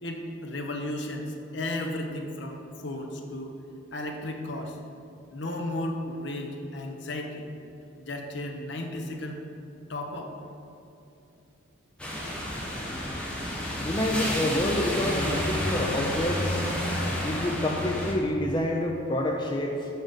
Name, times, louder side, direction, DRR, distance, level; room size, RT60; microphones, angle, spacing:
voice 1, 0.0-3.6 3.9-4.8 5.3-7.5 8.0-9.4 9.9-10.3, left 1 dB, 55° left, 3 dB, 0.8 m, -34 dB
sound 1, 12.0-18.1, left 1 dB, 5° left, 1.0 m, -30 dB
voice 2, 13.8-16.6 17.2-19.9, left 1 dB, 20° left, 0 dB, 0.4 m, -28 dB
6.4 x 4.9 x 6.5 m, 2.7 s
head